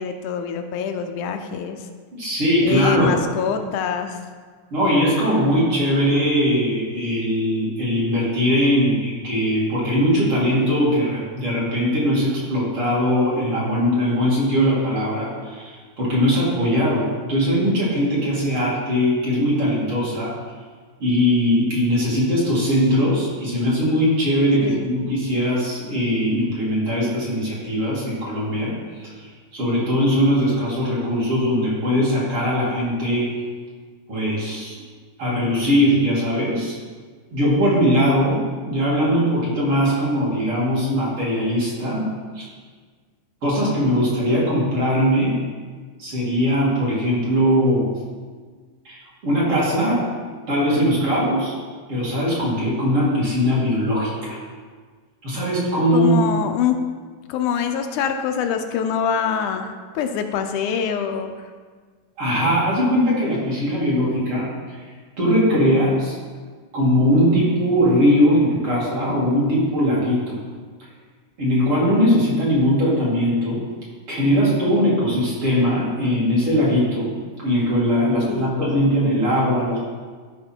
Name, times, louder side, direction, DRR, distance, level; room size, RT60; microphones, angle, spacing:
voice 1, 0.0-1.8 2.6-4.2 24.6-24.9 55.9-56.8 57.3-61.3 78.3-78.5, left 7 dB, 80° left, 6 dB, 2.0 m, -24 dB
voice 2, 2.1-3.1 4.7-20.3 21.0-28.7 29.0-29.1 29.5-33.3 34.1-34.7 35.2-36.7 37.3-42.1 42.3-42.4 43.4-45.4 46.0-47.9 48.8-50.1 50.5-51.5 51.9-54.4 55.2-56.2 62.2-64.8 65.2-66.1 66.7-70.4 71.4-73.6 74.1-77.1 77.4-79.8, equal, 45° right, -7 dB, 3.3 m, -20 dB
12.5 x 5.4 x 4.4 m, 1.5 s
omnidirectional pair, 3.6 m